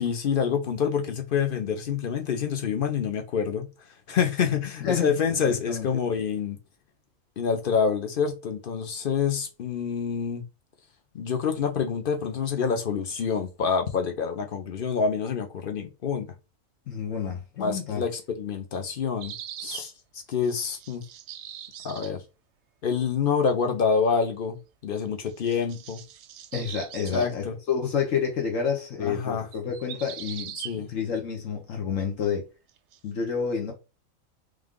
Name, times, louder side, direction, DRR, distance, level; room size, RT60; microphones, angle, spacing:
voice 1, 0.0-3.7 4.1-6.6 7.4-10.4 11.1-16.3 17.6-19.3 19.6-19.9 20.3-21.0 21.8-22.2 22.8-24.6 24.8-26.0 27.1-27.6 29.0-29.5 30.6-30.9, left 6 dB, 50° left, 0.8 m, -27 dB
voice 2, 4.8-5.1 5.5-5.9 16.9-18.0 26.5-32.5 33.0-33.7, left 7 dB, 75° left, 1.3 m, -29 dB
sound 1, 19.2-19.9 20.3-22.2 25.0-27.3 29.5-30.8 32.7-33.0, right 10 dB, 65° right, 0.8 m, -41 dB
3.4 x 3.3 x 3.7 m
omnidirectional pair, 1.4 m